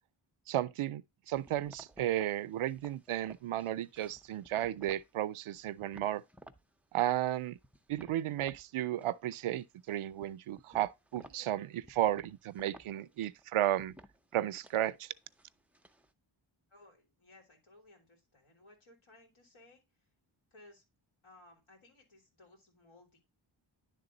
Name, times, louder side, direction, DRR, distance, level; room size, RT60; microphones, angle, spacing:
voice 1, 0.5-6.2 6.9-7.6 7.9-13.9 14.3-15.1, right 13 dB, 80° right, 0.5 m, -34 dB
sound 1, 1.3-5.1 5.5-6.6 7.0-8.7 8.9-9.6 9.9-16.1, right 1 dB, 5° right, 0.5 m, -57 dB
voice 2, 16.7-20.1 20.5-20.8 21.2-23.2, left 2 dB, 80° left, 3.2 m, -60 dB
10.5 x 3.6 x 3.8 m
wide cardioid pair, 120°, 49 cm